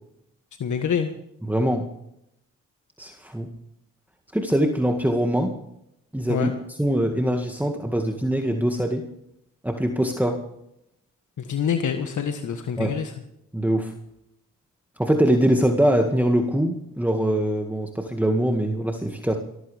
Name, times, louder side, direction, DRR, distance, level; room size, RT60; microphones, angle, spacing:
voice 1, 0.6-1.1 6.3-6.5 11.4-13.1, left 7 dB, 65° left, 7 dB, 1.5 m, -26 dB
voice 2, 1.4-1.9 3.0-3.5 4.3-5.6 6.1-9.1 9.6-10.4 12.8-13.0 13.5-13.9 15.0-19.4, equal, 5° right, 3 dB, 2.0 m, -23 dB
22.0 x 14.5 x 3.5 m, 0.78 s
supercardioid pair, 55°, 33 cm